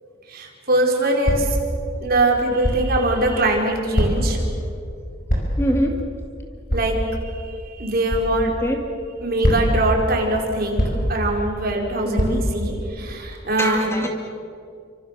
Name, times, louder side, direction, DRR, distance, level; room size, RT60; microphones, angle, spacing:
voice 1, 0.3-1.6 2.0-4.4 6.7-8.5 9.2-13.9, right 2 dB, 50° right, 0 dB, 4.9 m, -22 dB
sound 1, 1.2-1.6 2.6-3.0 3.9-4.4 5.3-5.7 6.7-7.0 8.1-8.3 9.4-9.9 10.8-11.2 12.2-12.6, equal, 45° left, 6.0 m, -22 dB
voice 2, 5.6-6.0 8.6-8.8 12.0-12.5 13.6-14.1, equal, 15° left, 2 dB, 2.2 m, -23 dB
29.5 x 26.0 x 6.7 m, 2.5 s
head